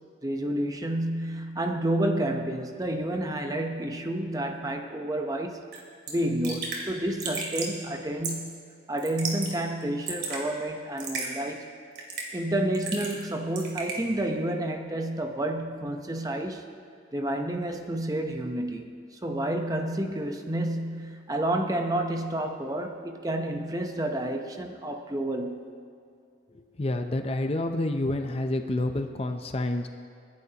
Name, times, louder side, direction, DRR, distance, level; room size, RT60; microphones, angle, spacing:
voice 1, 0.2-5.7 6.1-8.6 8.9-11.7 12.3-16.7 17.1-19.0 19.2-25.7, right 1 dB, 20° right, 4 dB, 0.8 m, -30 dB
Raindrop / Drip, 5.7-5.8 6.1-6.2 6.4-6.8 7.2-7.7 8.2-8.5 9.0-9.5 9.8-10.4 11.0-11.3 11.9-12.4 12.7-13.3 13.5-14.0, right 4 dB, 55° right, 2.6 m, -33 dB
voice 2, 26.8-29.9, left 1 dB, 30° left, 6 dB, 0.5 m, -28 dB
30.0 x 10.5 x 2.9 m, 2.4 s
head